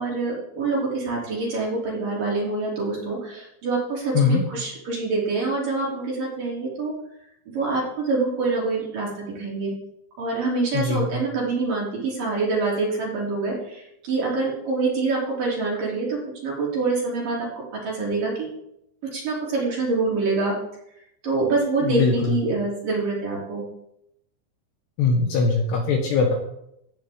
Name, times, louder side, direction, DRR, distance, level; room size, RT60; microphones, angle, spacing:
voice 1, 0.0-6.9 7.5-9.7 10.2-18.5 19.0-20.6 21.2-23.6, right 3 dB, 45° right, -4 dB, 4.3 m, -26 dB
voice 2, 10.7-11.2 21.8-22.4 25.0-26.3, left 4 dB, 70° left, 2 dB, 2.9 m, -21 dB
15.5 x 9.9 x 3.6 m, 0.80 s
omnidirectional pair, 5.9 m